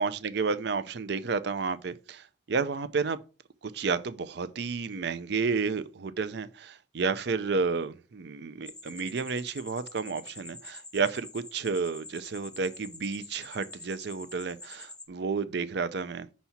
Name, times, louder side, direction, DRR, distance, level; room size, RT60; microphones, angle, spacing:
voice 1, 0.0-3.2 3.6-16.3, right 4 dB, 60° right, 0.5 m, -31 dB
sound 1, 8.7-15.1, left 3 dB, 5° left, 0.6 m, -47 dB
5.7 x 4.2 x 5.7 m
head